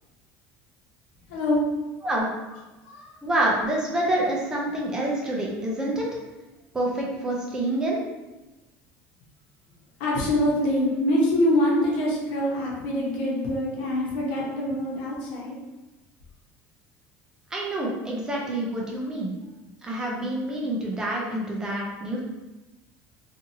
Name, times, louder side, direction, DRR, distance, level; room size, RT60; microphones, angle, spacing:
voice 1, 1.3-1.6 2.8-3.1 10.0-15.6, left 1 dB, 85° left, -3 dB, 0.9 m, -24 dB
voice 2, 3.2-6.0 6.7-8.0 17.5-19.3 19.8-22.2, right 1 dB, 10° right, -3 dB, 0.4 m, -27 dB
2.8 x 2.5 x 2.7 m, 1.1 s
cardioid pair, 175°, 5 cm